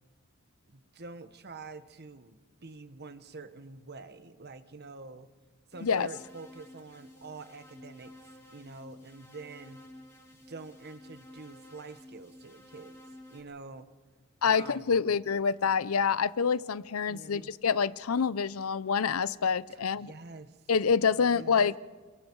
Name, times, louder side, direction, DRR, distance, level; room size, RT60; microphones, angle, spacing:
voice 1, 0.7-5.3 5.7-9.8 10.3-13.0 13.3-13.9 14.4-15.1 17.1-17.5 19.7-20.6 21.1-21.5, right 3 dB, 45° right, 11 dB, 1.1 m, -47 dB
sound 1, 5.7-13.4, left 1 dB, 10° left, 3.6 m, -52 dB
voice 2, 14.4-20.1 20.7-21.8, left 6 dB, 70° left, 18 dB, 0.6 m, -27 dB
28.5 x 23.0 x 4.7 m, 1.5 s
head